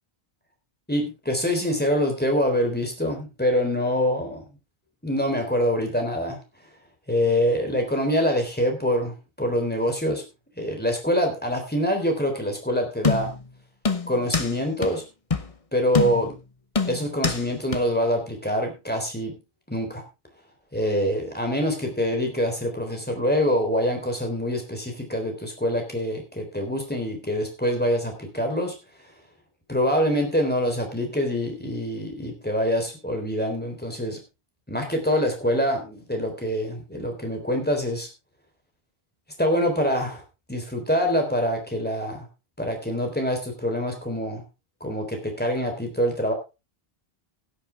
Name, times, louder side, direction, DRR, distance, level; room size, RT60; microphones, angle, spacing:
voice 1, 0.9-4.4 5.0-6.4 7.1-10.2 10.6-13.3 14.1-15.0 15.7-16.4 16.9-19.4 19.7-20.0 20.7-28.8 29.7-34.2 34.7-38.1 39.4-40.2 40.5-42.3 42.6-44.4 44.8-46.3, equal, 10° left, 3 dB, 3.7 m, -25 dB
sound 1, 13.0-13.5 13.9-14.5 14.8-14.9 15.3-15.5 15.9-16.4 16.8-17.4 17.7-17.8, left 4 dB, 35° left, 1.2 m, -25 dB
16.5 x 10.0 x 3.5 m, 0.28 s
omnidirectional pair, 1.0 m